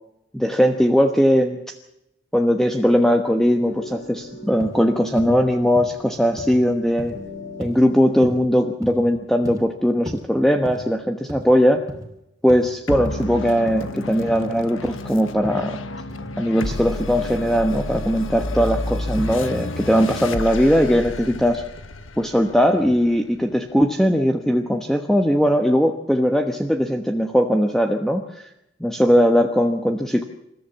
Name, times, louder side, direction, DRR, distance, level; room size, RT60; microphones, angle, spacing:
voice 1, 0.3-1.7 2.3-7.2 7.6-11.8 12.4-15.8 16.4-21.6 22.2-28.5 28.8-30.2, equal, ahead, 4 dB, 1.1 m, -19 dB
sound 1, 3.4-8.3, left 1 dB, 60° left, 5.3 m, -40 dB
sound 2, 4.6-4.8 5.2-5.4 5.7-6.0 6.4-6.6 7.0-7.2 7.6-7.8 8.2-8.5 8.8-9.1 9.4-9.7 10.1-10.2 10.6-10.9 11.3-11.5 11.8-12.1 12.5-12.7 13.0-13.2 13.7-13.8 14.3-14.5 14.9-15.0 15.4-15.7 16.1-16.3 16.7-16.9 17.3-17.5 17.9-18.1 18.6-18.8 19.2-19.4 19.8-20.0, equal, 20° right, 3.0 m, -35 dB
sound 3, 12.9-23.7, left 2 dB, 85° left, 1.4 m, -31 dB
28.0 x 14.5 x 7.3 m, 0.86 s
head